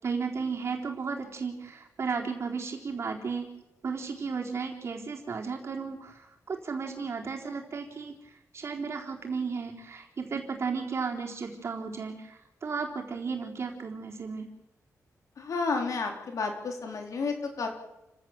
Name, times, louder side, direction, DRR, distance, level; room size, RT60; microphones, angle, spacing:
voice 1, 0.0-3.5 3.8-8.1 8.5-14.5, right 5 dB, 45° right, 1 dB, 3.9 m, -34 dB
voice 2, 15.4-17.7, left 4 dB, 65° left, 3 dB, 4.2 m, -31 dB
29.5 x 16.0 x 7.7 m, 0.95 s
wide cardioid pair, 175°, 6 cm